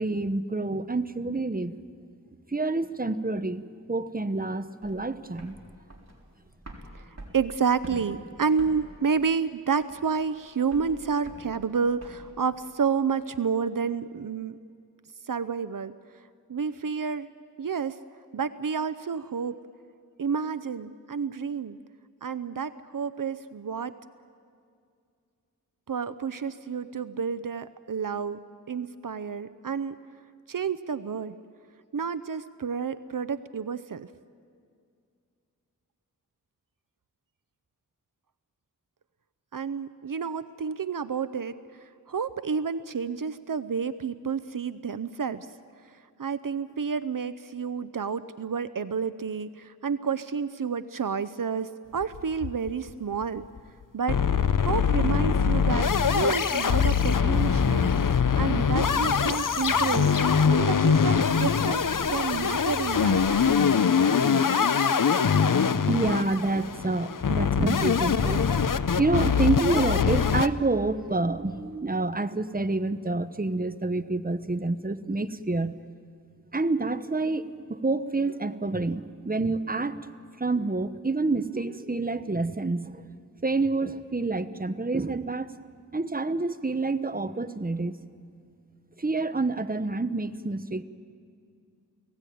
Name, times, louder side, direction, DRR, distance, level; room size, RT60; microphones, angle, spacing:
voice 1, 0.0-1.7 2.5-3.6 3.9-5.6 65.9-68.5 68.8-75.8 76.5-80.1 80.4-83.0 83.4-85.6 85.9-88.0 89.0-90.8, right 3 dB, 25° right, 11 dB, 1.1 m, -28 dB
sound 1, 4.8-12.3, right 1 dB, 50° right, 4.2 m, -46 dB
voice 2, 7.3-14.5 15.3-15.9 16.5-17.3 17.6-18.0 18.3-19.6 20.2-21.8 22.2-23.9 25.9-28.4 28.7-29.9 30.5-31.3 31.9-34.1 39.5-41.5 42.1-45.5 46.2-53.4 53.9-54.2 54.7-57.9 58.4-60.1 60.5-61.8 62.1-63.2, right 6 dB, 75° right, 14 dB, 0.7 m, -30 dB
sound 2, 52.0-52.9 53.2-53.3 53.6-53.7 54.1-70.5, left 6 dB, 75° left, 0.8 m, -23 dB
sound 3, 55.2-63.4, left 1 dB, 30° left, 1.6 m, -39 dB
30.0 x 17.5 x 9.3 m, 2.3 s
wide cardioid pair, 45°, 33 cm